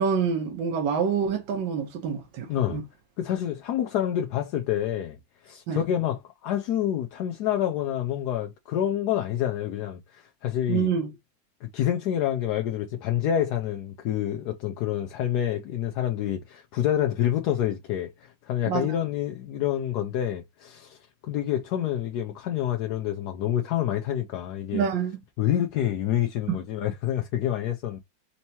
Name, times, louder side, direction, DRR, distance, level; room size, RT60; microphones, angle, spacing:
voice 1, 0.0-2.8 5.7-5.8 10.7-11.1 18.6-18.9 24.7-25.2 26.5-26.6, right 6 dB, 80° right, 1.6 m, -27 dB
voice 2, 2.5-2.8 3.2-10.9 11.6-24.9 25.4-28.0, left 11 dB, 70° left, 1.0 m, -28 dB
4.4 x 2.9 x 2.7 m
omnidirectional pair, 2.0 m